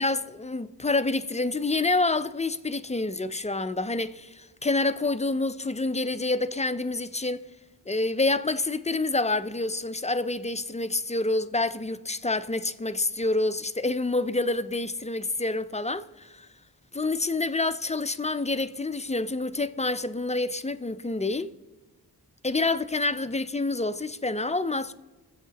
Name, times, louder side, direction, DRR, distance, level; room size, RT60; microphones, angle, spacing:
voice 1, 0.0-7.4 7.9-16.5 16.9-21.5 22.4-24.9, left 2 dB, 20° left, 0.4 m, -27 dB
22.5 x 7.9 x 4.0 m
wide cardioid pair, 80°, 39 cm